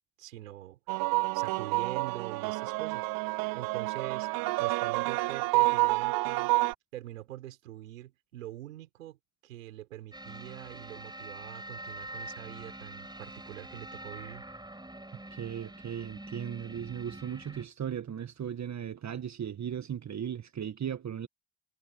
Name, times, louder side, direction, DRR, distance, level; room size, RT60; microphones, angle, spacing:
voice 1, 0.2-0.8 1.3-3.1 3.5-4.3 4.6-6.5 6.9-9.2 9.4-14.4, right 14 dB, 90° right, 5.7 m, -44 dB
sound 1, 0.9-6.7, right 23 dB, 60° right, 0.5 m, -29 dB
sound 2, 10.1-17.7, right 1 dB, 10° right, 6.6 m, -45 dB
voice 2, 15.3-21.3, right 9 dB, 45° right, 1.7 m, -37 dB
hypercardioid pair, 50°, 39 cm